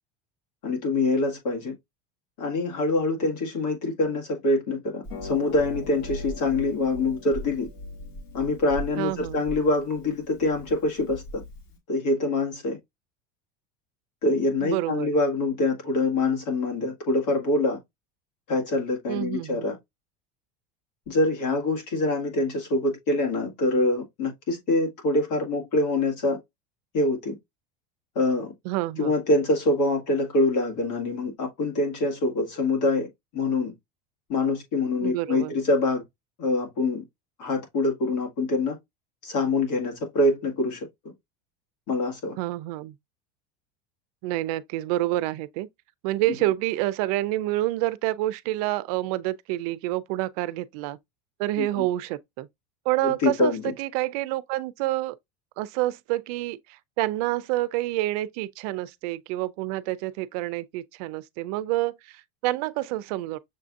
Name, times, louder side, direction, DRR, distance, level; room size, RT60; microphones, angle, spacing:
voice 1, 0.6-1.7 2.4-7.7 8.3-11.2 11.9-12.8 14.2-17.8 18.5-19.8 21.1-26.4 26.9-27.3 28.2-28.5 29.0-33.1 33.3-33.7 34.3-36.0 36.4-37.0 37.4-38.8 39.2-40.9 41.9-42.3 51.6-51.8 53.0-53.6, left 2 dB, 80° left, 1.9 m, -25 dB
Harp, 5.0-11.8, left 1 dB, 65° left, 1.6 m, -39 dB
voice 2, 9.0-9.4 14.6-15.1 19.1-19.7 28.7-29.1 35.0-35.5 42.4-42.9 44.2-45.7 46.0-51.0 51.4-52.5 52.9-55.2 55.6-63.4, right 16 dB, 70° right, 0.4 m, -28 dB
6.5 x 2.6 x 2.4 m
cardioid pair, 155°, 21 cm